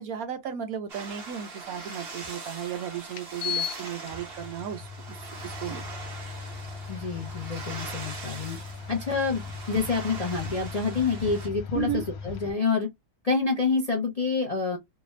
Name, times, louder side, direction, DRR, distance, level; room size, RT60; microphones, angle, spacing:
voice 1, 0.0-5.2 5.4-5.8 11.7-12.0, right 9 dB, 70° right, 1.1 m, -34 dB
sound 1, 0.9-11.5, right 3 dB, 40° right, 1.2 m, -42 dB
sound 2, 2.2-2.3 3.1-12.5, left 6 dB, 70° left, 1.2 m, -38 dB
voice 2, 6.9-8.6 8.9-9.4 9.7-12.9 13.2-14.8, left 4 dB, 35° left, 0.6 m, -27 dB
3.3 x 2.4 x 3.1 m
omnidirectional pair, 1.7 m